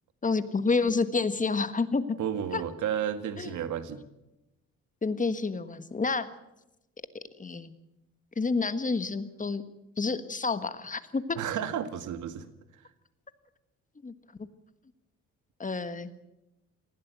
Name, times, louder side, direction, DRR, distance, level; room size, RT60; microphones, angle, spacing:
voice 1, 0.2-2.1 2.5-2.6 3.4-3.5 5.0-6.3 7.4-7.7 8.4-9.6 10.0-11.4 14.0-14.1 15.6-16.1, left 4 dB, 25° left, 12 dB, 1.5 m, -29 dB
voice 2, 2.2-4.0 11.4-12.5 12.7-12.9, right 9 dB, 80° right, 11 dB, 1.9 m, -32 dB
19.5 x 16.0 x 8.3 m, 0.92 s
cardioid pair, 90°, 30 cm